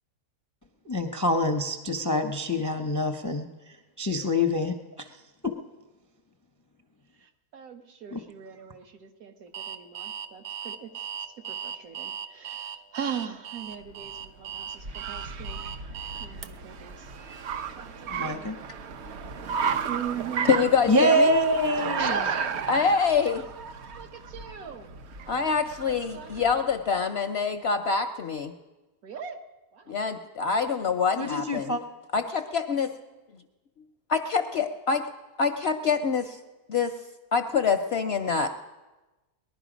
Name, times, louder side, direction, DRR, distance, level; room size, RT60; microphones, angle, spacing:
voice 1, 0.8-5.1 5.4-5.5 8.1-8.2 18.1-18.6 20.9-22.2 31.2-31.8, left 1 dB, 20° left, 6 dB, 0.5 m, -26 dB
voice 2, 7.2-10.9 11.2-15.6 16.2-17.1 17.7-18.5 19.9-20.7 21.8-23.0 23.9-24.9 25.3-25.5 25.8-26.7 29.0-29.4 29.7-30.0, right 6 dB, 70° right, 5 dB, 1.5 m, -39 dB
Alarm, 9.5-16.5, right 8 dB, 90° right, 1.2 m, -38 dB
Car, 13.8-26.7, right 6 dB, 55° right, 0.8 m, -34 dB
voice 3, 20.5-21.3 22.7-23.4 25.3-28.5 29.9-31.8 32.1-32.9 34.1-35.0 35.4-36.4 36.7-37.0 37.3-38.6, left 5 dB, 60° left, 6 dB, 0.7 m, -25 dB
19.5 x 11.5 x 5.1 m, 1.1 s
omnidirectional pair, 1.6 m